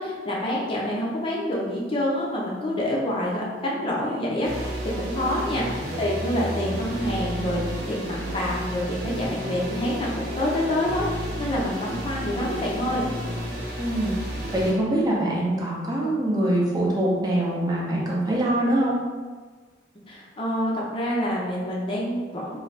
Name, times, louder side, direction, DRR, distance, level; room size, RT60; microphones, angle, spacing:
voice 1, 0.0-13.1 20.1-22.6, left 1 dB, 30° left, -4 dB, 0.6 m, -27 dB
sound 1, 4.4-14.7, equal, 85° right, 1.0 m, -32 dB
voice 2, 13.8-14.1 14.5-19.0, right 1 dB, 20° right, -5 dB, 0.6 m, -24 dB
3.2 x 2.2 x 4.0 m, 1.4 s
head